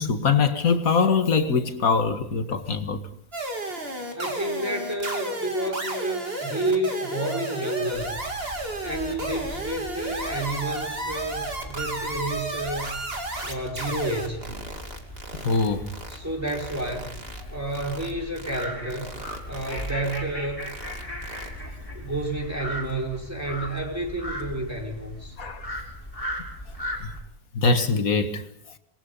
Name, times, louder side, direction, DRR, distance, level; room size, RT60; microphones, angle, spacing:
voice 1, 0.0-3.0 15.4-15.8 25.4-25.6 27.0-27.1 27.5-28.4, left 5 dB, 50° left, 2.1 m, -22 dB
sound 1, 3.3-16.2 16.5-17.4 17.7-18.1 18.4-18.6 18.9-20.2 20.6-21.5, right 2 dB, 30° right, 3.1 m, -33 dB
voice 2, 4.1-8.2 8.8-13.0 13.4-14.5 16.1-17.1 17.5-19.1 19.5-20.6 21.9-25.3, right 1 dB, 10° right, 5.1 m, -30 dB
sound 2, 7.9-27.2, left 1 dB, 10° left, 5.9 m, -38 dB
27.0 x 22.0 x 5.6 m
omnidirectional pair, 2.0 m